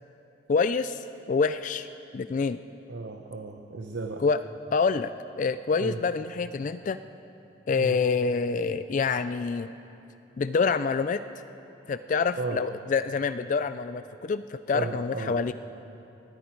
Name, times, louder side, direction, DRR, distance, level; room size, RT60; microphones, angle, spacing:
voice 1, 0.5-1.9 2.1-2.6 4.2-4.4 4.7-5.1 5.4-7.0 7.7-9.7 10.4-11.2 11.9-15.5, left 5 dB, 40° left, 12 dB, 0.3 m, -26 dB
voice 2, 2.9-4.2 5.7-6.0 7.8-8.0 12.3-12.6 14.7-15.4, right 3 dB, 65° right, 4 dB, 0.8 m, -34 dB
20.0 x 14.5 x 4.5 m, 2.9 s
head